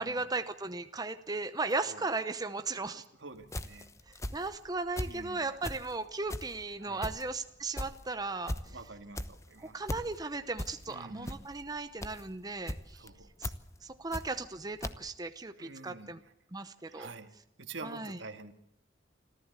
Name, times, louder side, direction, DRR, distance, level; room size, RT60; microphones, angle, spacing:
voice 1, 0.0-3.0 4.1-8.8 9.6-13.1 13.4-13.5 13.8-16.2 16.5-17.1 17.8-18.2, right 3 dB, 20° right, 9 dB, 0.8 m, -36 dB
voice 2, 2.8-3.9 5.0-5.4 6.8-7.1 8.7-9.8 10.9-11.4 12.9-13.3 15.6-16.2 16.9-17.3 17.6-18.5, right 3 dB, 75° right, 8 dB, 2.0 m, -47 dB
sound 1, 3.4-5.2 5.6-14.6 14.8-14.9, left 1 dB, 15° left, 1.0 m, -39 dB
26.5 x 14.5 x 8.2 m, 0.85 s
head